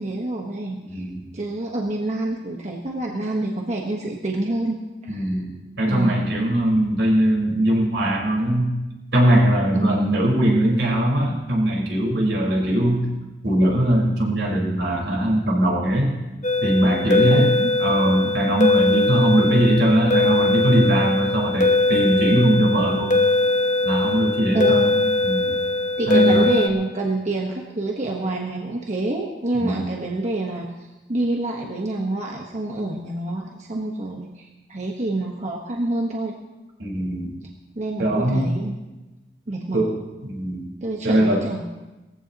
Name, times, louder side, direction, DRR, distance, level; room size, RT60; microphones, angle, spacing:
voice 1, 0.0-1.1 1.3-5.3 5.9-6.2 9.7-10.1 17.2-17.7 24.5-25.0 26.0-30.7 31.1-36.3 37.7-38.8 39.5-39.8 40.8-41.6, right 2 dB, 40° right, 0 dB, 1.3 m, -27 dB
voice 2, 0.8-1.2 5.1-8.7 9.1-13.0 13.4-16.1 16.6-17.5 17.8-23.2 23.8-25.6 26.1-26.5 29.5-29.9 36.8-37.4 38.0-38.6 39.7-39.9 40.2-40.7 41.0-41.4, right 1 dB, 85° right, -2 dB, 4.6 m, -20 dB
sound 1, 16.4-26.7, left 2 dB, 45° left, 1.1 m, -21 dB
20.0 x 15.5 x 3.0 m, 1.1 s
head